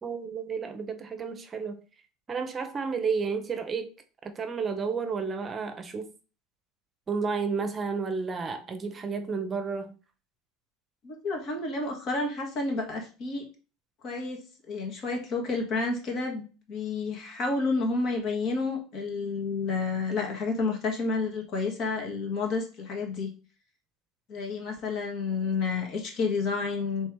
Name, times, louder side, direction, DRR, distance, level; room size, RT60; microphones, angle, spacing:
voice 1, 0.0-1.8 2.3-3.9 4.2-6.1 7.1-10.0, right 5 dB, 30° right, 0.7 m, -31 dB
voice 2, 11.0-13.5 14.0-14.4 14.7-23.3 24.3-27.1, left 3 dB, 50° left, 1.6 m, -30 dB
3.4 x 3.2 x 4.6 m
supercardioid pair, 95°, 0 cm